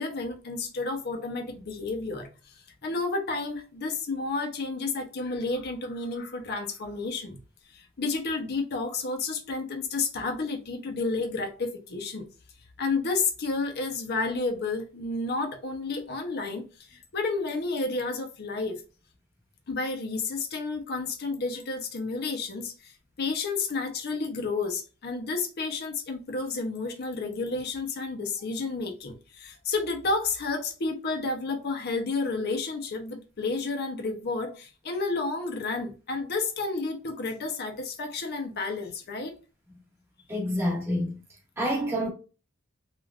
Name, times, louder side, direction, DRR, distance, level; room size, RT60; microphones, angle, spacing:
voice 1, 0.0-2.5 2.8-7.4 7.7-12.3 12.8-18.8 19.7-22.9 23.2-39.3, left 3 dB, 50° left, 0.6 m, -31 dB
voice 2, 40.3-41.2 41.6-42.1, equal, 10° right, 1.1 m, -27 dB
3.3 x 2.4 x 2.3 m
head